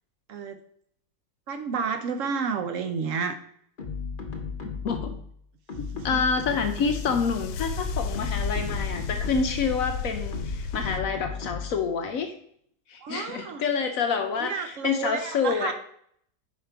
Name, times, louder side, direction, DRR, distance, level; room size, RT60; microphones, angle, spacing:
voice 1, 1.5-3.4 5.9-6.2 13.0-13.6 14.4-15.7, right 5 dB, 70° right, 7 dB, 0.8 m, -30 dB
sound 1, 3.8-5.3 5.7-7.5 8.0-9.7 10.3-11.8, left 5 dB, 45° left, 0.7 m, -35 dB
voice 2, 4.8-5.2 6.0-12.3 12.9-15.7, left 5 dB, 65° left, 7 dB, 0.9 m, -27 dB
sound 2, 6.4-11.0, left 4 dB, 80° left, 1.2 m, -32 dB
5.8 x 5.0 x 4.5 m, 0.66 s
omnidirectional pair, 1.9 m